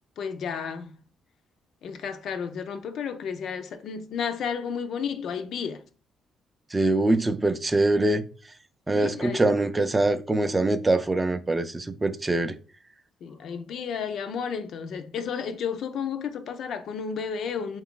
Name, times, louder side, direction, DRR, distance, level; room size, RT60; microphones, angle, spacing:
voice 1, 0.2-1.0 1.8-5.8 9.0-9.4 13.2-17.8, left 6 dB, 65° left, 0.5 m, -32 dB
voice 2, 6.7-8.2 8.9-12.5, right 2 dB, 20° right, 0.4 m, -23 dB
3.9 x 2.4 x 3.6 m
cardioid pair, 100°, 0 cm